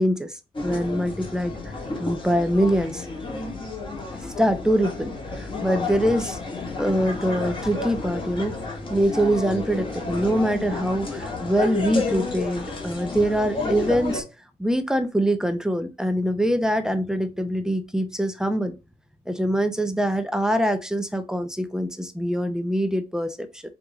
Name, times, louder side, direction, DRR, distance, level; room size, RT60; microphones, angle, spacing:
voice 1, 0.0-1.5 2.0-3.1 4.2-6.4 6.8-8.5 8.9-14.2 14.6-18.8 19.3-23.6, equal, 5° right, 0.6 m, -24 dB
sound 1, 0.5-14.2, left 3 dB, 30° left, 1.6 m, -31 dB
4.7 x 2.6 x 3.5 m
cardioid pair, 85°, 17 cm